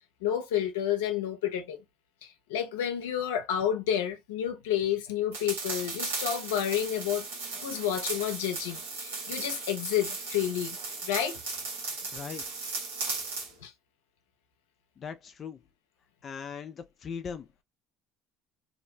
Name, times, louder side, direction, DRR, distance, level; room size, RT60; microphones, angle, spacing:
voice 1, 0.2-1.8 2.2-7.2 7.5-10.8 11.0-11.4 13.6-13.7, left 10 dB, 80° left, 0.6 m, -30 dB
sound 1, 5.3-13.5, right 4 dB, 85° right, 1.0 m, -36 dB
voice 2, 12.1-12.4 15.0-15.6 16.2-17.6, left 6 dB, 45° left, 0.4 m, -39 dB
2.7 x 2.0 x 2.6 m
hypercardioid pair, 65°, 0 cm